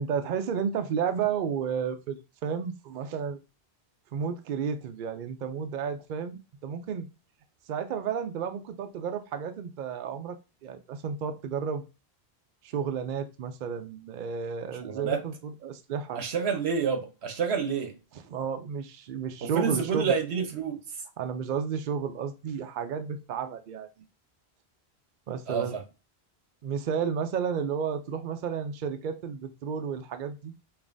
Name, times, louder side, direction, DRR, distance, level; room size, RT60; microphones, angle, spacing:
voice 1, 0.0-3.4 4.1-7.1 7.7-11.8 12.6-16.2 18.1-20.1 21.2-23.9 25.3-25.7 26.6-30.5, right 7 dB, 60° right, 0.6 m, -32 dB
voice 2, 14.8-15.2 16.2-17.9 19.4-20.8 25.5-25.8, right 6 dB, 80° right, 1.1 m, -28 dB
5.3 x 2.5 x 2.5 m
omnidirectional pair, 1.1 m